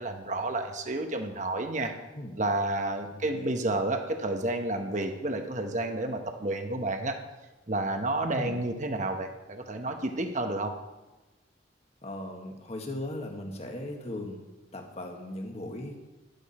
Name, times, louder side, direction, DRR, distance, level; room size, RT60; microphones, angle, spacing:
voice 1, 0.0-1.9 2.4-7.2 7.7-10.7, right 2 dB, 40° right, 5 dB, 1.1 m, -30 dB
voice 2, 3.1-3.5 8.3-8.6 12.0-14.4 14.7-16.0, left 1 dB, 30° left, 2 dB, 1.7 m, -38 dB
12.0 x 11.5 x 4.3 m, 1.1 s
head